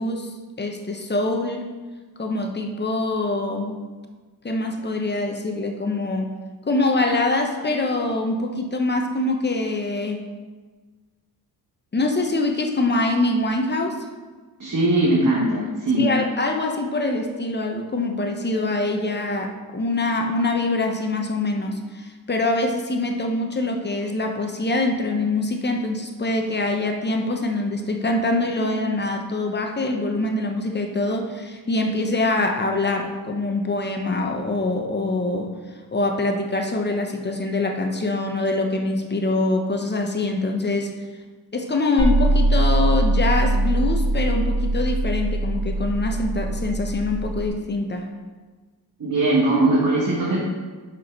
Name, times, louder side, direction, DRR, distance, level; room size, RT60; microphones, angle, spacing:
voice 1, 0.0-1.6 2.2-3.8 4.4-6.3 6.7-10.3 11.9-14.0 16.0-35.5 35.9-40.9 41.5-48.1, left 2 dB, 30° left, 3 dB, 0.9 m, -24 dB
voice 2, 14.6-16.1 49.0-50.4, right 2 dB, 55° right, -5 dB, 1.6 m, -20 dB
sound 1, 42.0-47.5, right 1 dB, 15° left, 1.2 m, -22 dB
6.2 x 5.5 x 5.3 m, 1.4 s
cardioid pair, 105°, 37 cm